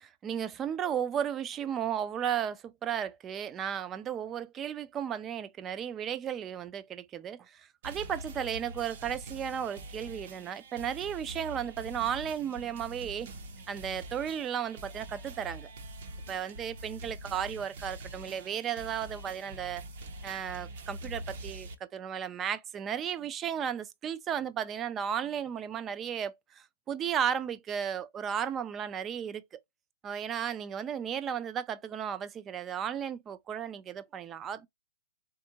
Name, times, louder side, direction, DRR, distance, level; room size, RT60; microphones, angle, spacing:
voice 1, 0.0-13.3 13.7-15.7 16.3-19.8 20.2-29.4 30.0-34.7, right 8 dB, 15° right, 0.3 m, -34 dB
sound 1, 7.8-21.7, right 1 dB, 50° right, 0.8 m, -45 dB
3.6 x 2.3 x 2.7 m
hypercardioid pair, 150°, 0 cm